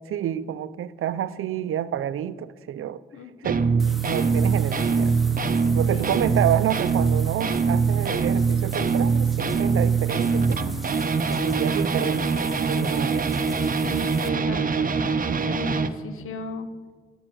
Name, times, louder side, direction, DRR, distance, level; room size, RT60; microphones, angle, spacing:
voice 1, 0.1-3.0 3.4-5.1 5.7-10.8 11.3-13.3 14.3-14.7, right 10 dB, 85° right, 15 dB, 0.5 m, -29 dB
voice 2, 3.1-3.7 5.9-6.2 13.8-16.7, left 3 dB, 90° left, 10 dB, 1.1 m, -37 dB
sound 1, 3.4-15.9, right 5 dB, 40° right, 0.8 m, -23 dB
sound 2, 3.8-14.3, right 1 dB, ahead, 1.5 m, -43 dB
10.5 x 10.0 x 6.2 m, 1.4 s
cardioid pair, 65°, 21 cm